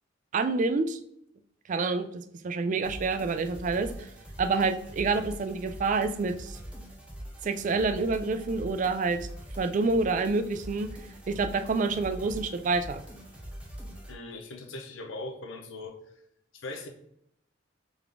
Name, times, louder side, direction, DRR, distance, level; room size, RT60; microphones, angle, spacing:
voice 1, 0.3-1.0 1.7-4.1 4.4-6.6 7.4-9.3 9.6-10.9 11.3-13.0, right 4 dB, 40° right, 9 dB, 0.3 m, -28 dB
sound 1, 2.8-14.1, equal, 5° right, 0.7 m, -43 dB
voice 2, 14.1-16.0 16.5-16.9, left 2 dB, 85° left, 5 dB, 0.7 m, -40 dB
3.7 x 3.5 x 3.4 m, 0.71 s
head